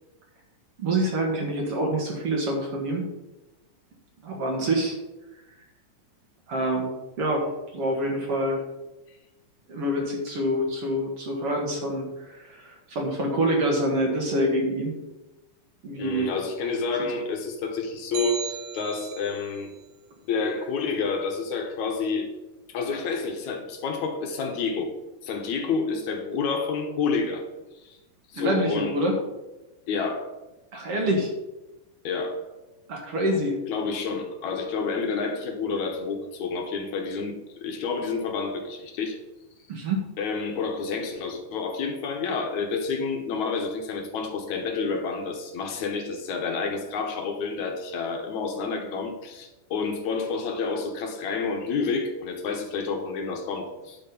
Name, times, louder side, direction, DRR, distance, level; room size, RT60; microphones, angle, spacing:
voice 1, 0.8-3.1 4.2-4.9 6.5-8.6 9.7-14.9 15.8-16.4 28.3-29.2 30.7-31.3 32.9-33.6 39.7-40.0, right 1 dB, 50° right, 1 dB, 2.2 m, -26 dB
voice 2, 16.0-19.7 20.2-22.3 22.7-24.9 25.2-27.4 27.8-28.0 28.3-29.0 29.9-30.3 32.0-32.4 33.7-37.3 37.6-39.2 40.2-54.0, left 4 dB, 70° left, 4 dB, 2.3 m, -29 dB
sound 1, 18.1-19.5, right 5 dB, 80° right, 2.7 m, -36 dB
10.5 x 6.5 x 5.3 m, 1.0 s
omnidirectional pair, 3.8 m